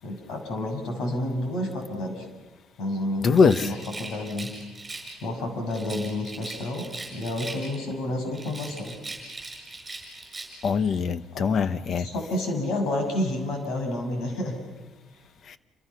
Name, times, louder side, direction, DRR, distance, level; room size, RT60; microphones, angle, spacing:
voice 1, 0.0-2.2 2.8-4.5 5.2-6.9 7.1-8.9 11.3-11.5 12.0-14.6, left 1 dB, 60° left, 6.7 m, -30 dB
voice 2, 3.2-3.7 10.6-12.1 15.5-15.6, left 5 dB, 40° left, 0.9 m, -22 dB
Rattle, 3.3-5.2 5.7-7.9 8.3-10.8, right 2 dB, 15° right, 7.0 m, -40 dB
29.0 x 28.0 x 5.9 m
cardioid pair, 160°, 0 cm